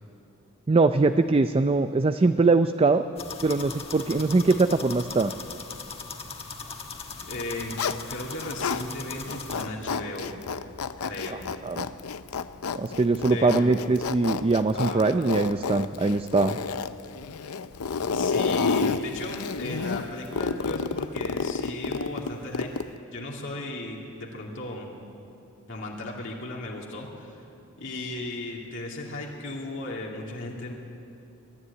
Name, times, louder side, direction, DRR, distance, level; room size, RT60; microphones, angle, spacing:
voice 1, 0.7-3.0 3.4-5.3 11.3-11.9 12.7-16.6, right 3 dB, 25° right, 9 dB, 0.4 m, -22 dB
sound 1, 3.2-9.6, left 5 dB, 25° left, 1.5 m, -39 dB
Zipper (clothing), 7.2-8.8 9.2-23.0, left 5 dB, 85° left, 0.7 m, -30 dB
voice 2, 7.3-7.7 8.1-10.4 11.0-11.4 13.3-14.0 14.7-15.1 18.1-22.7 23.1-24.9 25.7-27.4 27.8-30.7, left 2 dB, 60° left, -2 dB, 2.7 m, -36 dB
22.5 x 12.5 x 9.9 m, 2.9 s
head